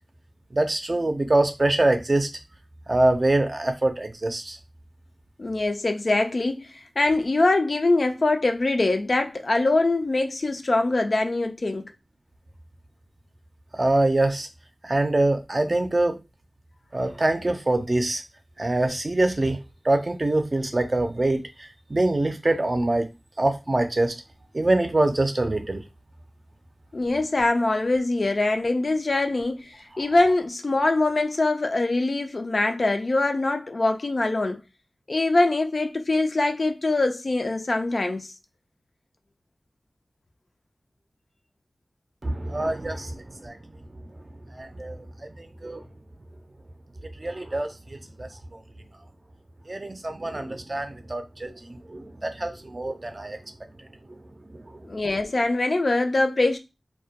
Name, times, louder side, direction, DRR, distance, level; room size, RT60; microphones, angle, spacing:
voice 1, 0.5-2.3 2.9-4.6 13.7-14.5 14.8-16.2 16.9-18.2 18.6-19.6 19.8-23.1 23.4-24.1 24.5-25.8 42.2-43.6 44.5-45.8 47.2-48.3 49.7-53.4 54.1-54.2 54.5-54.8, right 2 dB, 45° right, 0.5 m, -24 dB
voice 2, 5.4-11.9 26.9-34.6 35.1-38.3 54.9-56.6, left 2 dB, 65° left, 0.3 m, -23 dB
2.2 x 2.1 x 2.7 m
wide cardioid pair, 45°, 0 cm